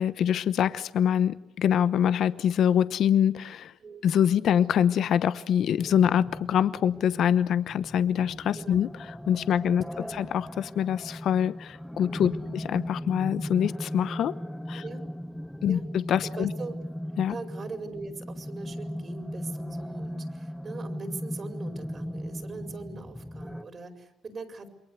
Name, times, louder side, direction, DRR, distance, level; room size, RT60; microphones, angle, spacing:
voice 1, 0.0-3.7 4.0-14.3 14.7-14.8 15.6-16.5 17.2-17.3, left 9 dB, 70° left, 14 dB, 1.0 m, -25 dB
sound 1, 5.8-23.6, equal, 5° left, 1.1 m, -38 dB
voice 2, 8.6-8.9 9.9-10.3 12.3-12.6 14.8-15.0 15.6-15.9 16.2-16.7 17.3-24.7, right 4 dB, 45° right, 6 dB, 5.0 m, -41 dB
28.5 x 22.5 x 8.1 m, 0.77 s
cardioid pair, 90°, 0 cm